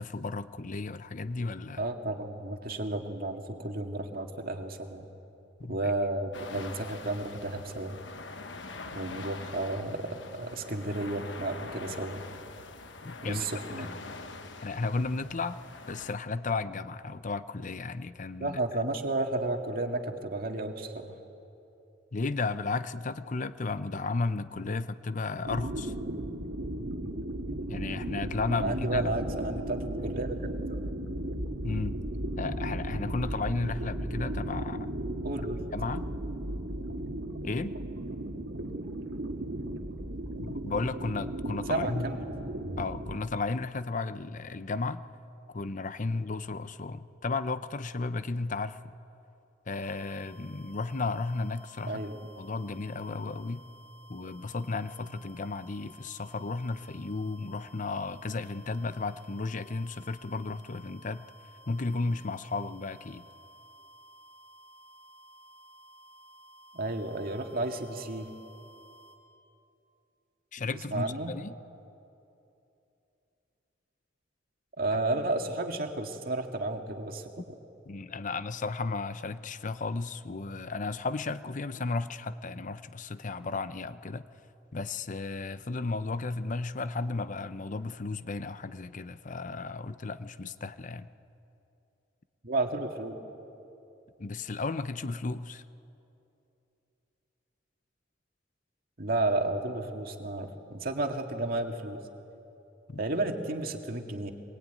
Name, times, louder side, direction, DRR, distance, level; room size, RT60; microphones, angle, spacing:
voice 1, 0.0-1.9 5.6-5.9 13.0-13.9 14.6-15.6 15.9-18.6 22.1-25.9 27.7-29.3 31.6-32.0 32.4-35.1 35.7-36.1 37.4-37.7 40.4-42.1 42.8-45.0 45.5-49.0 49.7-52.0 52.4-53.7 54.1-61.2 61.7-63.3 70.5-71.5 77.9-84.3 84.7-91.1 94.2-95.6 102.9-103.0, left 3 dB, 40° left, 13 dB, 0.7 m, -34 dB
voice 2, 1.8-5.0 5.7-8.0 8.9-12.2 13.2-13.9 18.4-21.1 28.5-30.4 30.7-30.8 35.2-36.0 41.7-42.3 51.8-52.2 66.7-68.3 70.9-71.3 74.8-77.6 92.4-93.2 99.0-102.0 103.0-104.3, right 2 dB, 50° right, 3 dB, 2.0 m, -32 dB
sound 1, 6.3-16.1, left 3 dB, 65° left, 1.2 m, -44 dB
sound 2, 25.4-43.2, right 1 dB, 85° right, 1.9 m, -35 dB
sound 3, 49.7-69.2, right 1 dB, 15° left, 3.5 m, -55 dB
24.0 x 21.5 x 9.3 m, 2.8 s
head